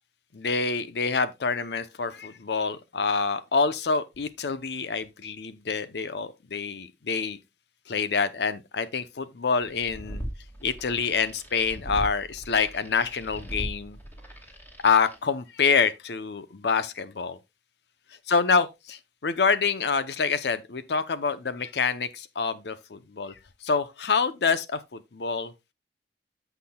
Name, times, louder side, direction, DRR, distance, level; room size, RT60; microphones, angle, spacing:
voice 1, 0.3-7.4 7.9-10.2 10.6-14.0 14.8-17.4 18.3-23.3 23.6-25.5, left 5 dB, 65° left, 0.7 m, -26 dB
sound 1, 9.7-15.2, equal, 10° left, 2.5 m, -39 dB
14.0 x 5.9 x 2.2 m
head